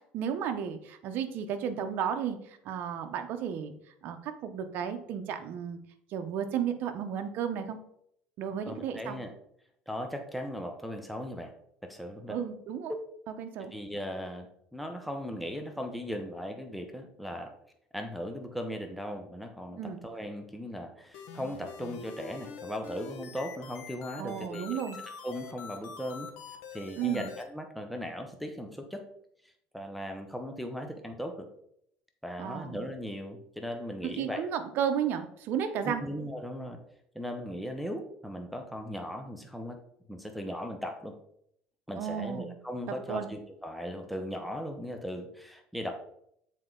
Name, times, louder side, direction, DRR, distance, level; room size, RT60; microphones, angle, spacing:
voice 1, 0.1-2.4 2.6-3.7 4.0-5.8 6.1-7.8 8.4-9.2 12.3-12.9 13.4-13.7 19.8-20.0 24.2-25.0 27.0-27.3 32.4-32.7 34.2-36.0 42.0-42.5 42.9-43.3, right 8 dB, 60° right, 7 dB, 0.9 m, -33 dB
voice 2, 8.6-9.3 9.9-11.5 11.8-12.4 13.6-17.5 17.9-24.8 25.2-26.3 26.7-29.1 29.4-31.5 32.2-34.5 35.8-36.8 37.1-39.8 40.1-41.2 41.9-45.9, equal, ahead, 4 dB, 0.7 m, -38 dB
sound 1, 21.1-27.4, left 6 dB, 70° left, 1.2 m, -45 dB
7.6 x 4.6 x 3.8 m, 0.72 s
cardioid pair, 125°, 4 cm